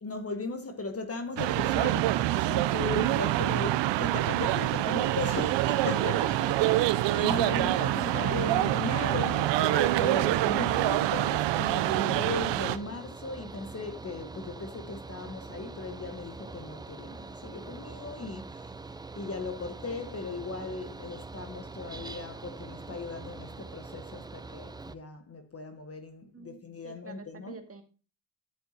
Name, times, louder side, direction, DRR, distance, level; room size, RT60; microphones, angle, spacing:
voice 1, 0.0-6.1 7.1-18.7 19.1-27.6, left 3 dB, 30° left, 1.2 m, -37 dB
sound 1, 1.4-12.8, right 15 dB, 65° right, 0.6 m, -26 dB
Mechanical fan, 5.3-24.9, right 3 dB, 10° right, 0.4 m, -44 dB
voice 2, 5.8-7.0 26.3-26.6 26.8-27.8, right 3 dB, 30° right, 2.0 m, -42 dB
9.7 x 7.8 x 2.8 m
hypercardioid pair, 55°, 47 cm